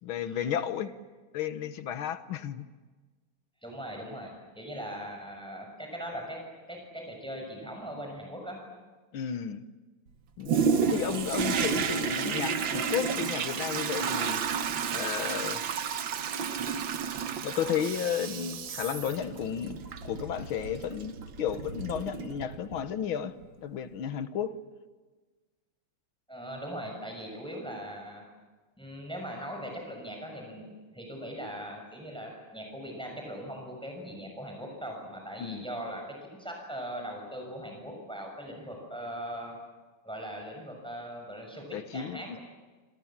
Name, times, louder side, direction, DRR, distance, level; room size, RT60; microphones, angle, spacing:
voice 1, 0.0-0.9 1.3-2.7 9.1-9.7 10.4-10.5 10.8-14.5 14.9-15.7 17.4-24.5 35.4-35.6 41.7-42.4, left 9 dB, 70° left, 11 dB, 2.0 m, -33 dB
voice 2, 3.6-8.6 26.3-28.2 28.8-39.5 40.0-42.4, equal, ahead, 1 dB, 6.3 m, -40 dB
Toilet flush, 10.5-22.9 23.4-23.5, right 6 dB, 65° right, 1.9 m, -31 dB
28.0 x 26.5 x 7.4 m, 1.3 s
omnidirectional pair, 2.4 m